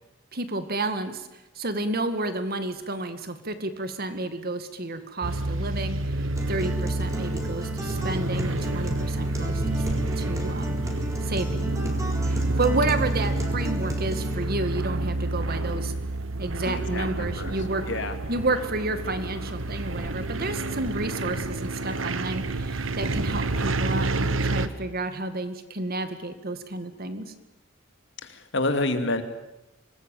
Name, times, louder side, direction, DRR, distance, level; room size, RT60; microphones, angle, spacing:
voice 1, 0.3-1.3 1.6-9.8 10.2-10.8 11.2-11.7 12.3-15.9 16.4-17.8 18.3-27.3, right 2 dB, 50° right, 10 dB, 2.1 m, -31 dB
sound 1, 5.2-24.7, right 2 dB, 80° right, 1.4 m, -29 dB
Acoustic guitar, 6.3-14.3, right 2 dB, 15° right, 4.0 m, -34 dB
voice 2, 16.7-17.5 17.9-18.1 28.2-29.2, left 2 dB, 65° left, 8 dB, 2.6 m, -28 dB
25.5 x 20.0 x 9.2 m, 0.96 s
head